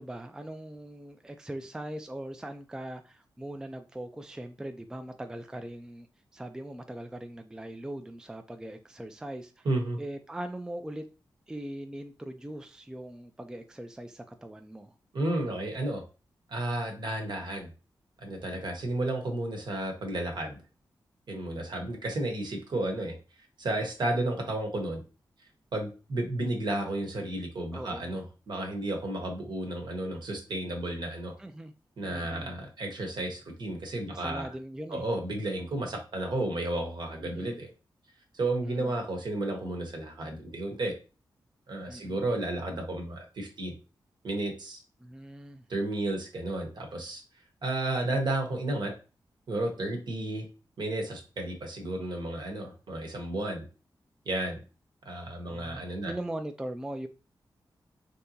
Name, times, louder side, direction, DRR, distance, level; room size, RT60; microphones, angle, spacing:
voice 1, 0.0-6.1 6.3-9.7 10.0-11.1 11.5-14.9 27.7-28.2 31.4-31.7 32.1-32.5 34.1-35.1 37.2-37.6 38.6-38.9 41.9-42.2 45.0-45.7 55.4-57.1, right 1 dB, 10° right, 0.3 m, -40 dB
voice 2, 9.6-10.0 15.1-16.0 16.5-17.7 18.2-20.6 21.3-23.1 23.6-25.0 25.7-31.3 32.0-34.5 34.9-37.7 38.3-40.9 41.7-43.8 44.2-44.8 45.7-47.2 47.6-48.9 49.5-50.5 50.8-53.6 54.2-54.6 55.0-56.1, right 1 dB, 65° right, 1.0 m, -32 dB
3.4 x 2.8 x 2.7 m
cardioid pair, 75°, 8 cm